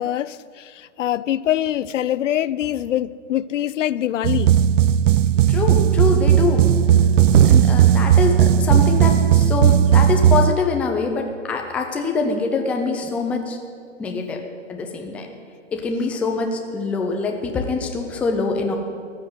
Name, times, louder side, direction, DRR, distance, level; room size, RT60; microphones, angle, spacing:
voice 1, 0.0-4.5, left 12 dB, 75° left, 0.5 m, -24 dB
sound 1, 4.2-10.5, right 10 dB, 75° right, 0.5 m, -15 dB
voice 2, 5.5-6.7 7.5-13.6 14.0-14.4 14.7-15.3 15.7-18.8, left 4 dB, 5° left, 0.4 m, -24 dB
14.5 x 5.9 x 9.6 m
hypercardioid pair, 135°, 38 cm